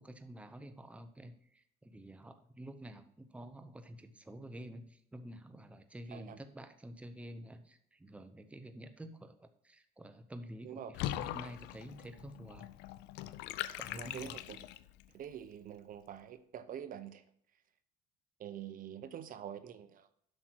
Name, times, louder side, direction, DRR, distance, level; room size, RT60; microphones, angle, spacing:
voice 1, 0.0-12.7 13.7-14.3, right 1 dB, 5° right, 8 dB, 0.7 m, -49 dB
Water / Bathtub (filling or washing), 10.9-15.0, left 13 dB, 90° left, 0.4 m, -41 dB
voice 2, 14.0-14.6 15.1-17.2 18.4-20.1, right 9 dB, 55° right, 12 dB, 0.7 m, -46 dB
7.9 x 6.0 x 4.5 m, 0.68 s
cardioid pair, 110°, 17 cm